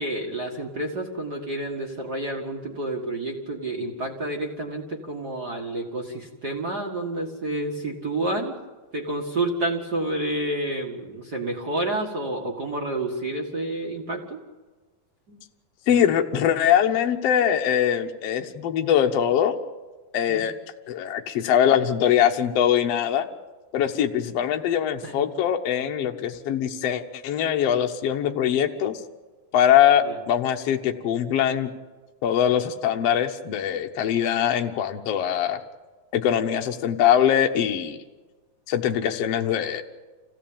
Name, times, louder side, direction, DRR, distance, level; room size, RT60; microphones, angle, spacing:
voice 1, 0.0-8.5 8.9-14.4 15.3-15.4 20.3-20.5 25.0-25.1 30.0-30.1, right 2 dB, 40° right, 1 dB, 1.5 m, -29 dB
voice 2, 15.9-19.5 20.1-20.5 20.9-23.3 23.7-28.9 29.5-31.7 32.2-35.6 36.1-38.0 38.7-39.8, left 9 dB, 75° left, 4 dB, 1.4 m, -22 dB
27.0 x 16.5 x 8.8 m, 1.3 s
omnidirectional pair, 4.5 m